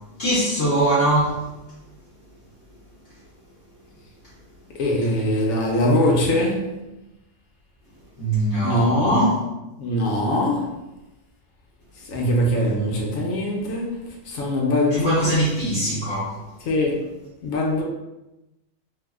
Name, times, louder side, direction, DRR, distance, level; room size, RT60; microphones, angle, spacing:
voice 1, 0.2-1.4 8.2-9.4 14.9-16.4, right 1 dB, 55° left, -9 dB, 1.0 m, -21 dB
voice 2, 4.8-6.6 8.6-9.2 9.8-10.7 12.1-13.9 14.3-15.1 16.7-17.0 17.4-17.8, left 1 dB, 75° left, -1 dB, 1.0 m, -22 dB
4.4 x 2.0 x 2.3 m, 0.97 s
omnidirectional pair, 1.5 m